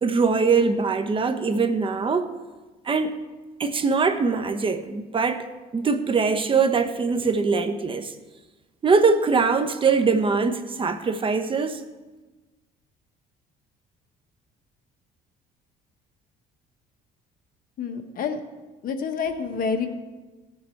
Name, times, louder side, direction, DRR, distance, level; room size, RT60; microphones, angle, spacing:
voice 1, 0.0-2.3 2.8-3.2 3.6-5.5 5.7-8.1 8.8-11.8, right 4 dB, 30° right, 8 dB, 1.0 m, -22 dB
voice 2, 17.8-18.4 18.8-19.9, left 5 dB, 55° left, 6 dB, 1.3 m, -28 dB
17.0 x 7.7 x 4.6 m, 1.2 s
cardioid pair, 110°, 17 cm